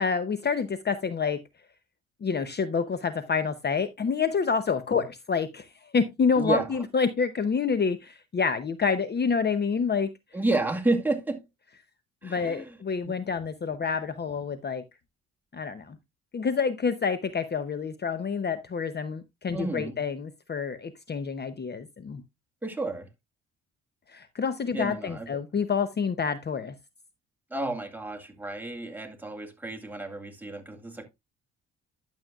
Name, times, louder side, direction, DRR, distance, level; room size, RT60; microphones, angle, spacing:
voice 1, 0.0-1.4 2.2-10.1 12.2-14.8 15.5-16.0 16.3-22.2 24.1-26.7, left 5 dB, 35° left, 0.8 m, -28 dB
voice 2, 6.4-6.8 10.3-11.4 12.2-12.8 13.0-13.2 19.5-20.0 22.6-23.1 24.7-25.3 27.5-31.1, right 2 dB, 5° right, 2.1 m, -31 dB
11.0 x 7.4 x 2.4 m
cardioid pair, 90°, 30 cm